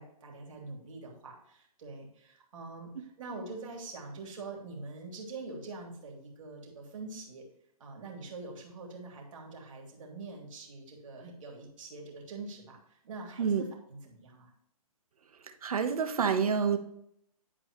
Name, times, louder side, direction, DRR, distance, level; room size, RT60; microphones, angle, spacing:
voice 1, 0.0-7.4 7.8-14.5, right 3 dB, 60° right, 0 dB, 3.3 m, -44 dB
voice 2, 15.6-16.8, right 6 dB, 75° right, 7 dB, 1.3 m, -27 dB
11.5 x 4.7 x 3.2 m, 0.73 s
hypercardioid pair, 155°, 19 cm